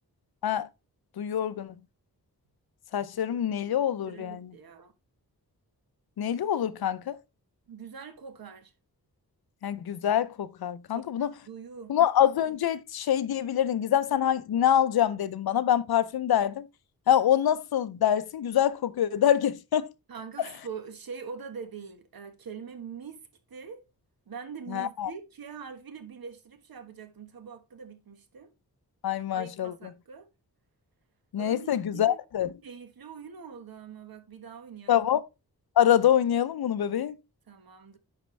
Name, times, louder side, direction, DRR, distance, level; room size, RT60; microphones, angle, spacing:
voice 1, 1.2-1.7 2.9-4.5 6.2-7.2 9.6-11.3 11.9-16.7 17.1-19.9 24.7-25.1 29.0-29.7 31.3-32.5 34.9-35.2 35.8-37.2, left 10 dB, 85° left, 0.6 m, -25 dB
voice 2, 4.1-4.9 7.7-8.7 10.9-11.9 20.1-23.2 23.5-23.8 24.3-28.5 29.3-30.3 31.4-32.2 32.6-35.1 37.5-38.0, right 6 dB, 70° right, 1.4 m, -43 dB
10.5 x 4.5 x 3.2 m
wide cardioid pair, 150°, 36 cm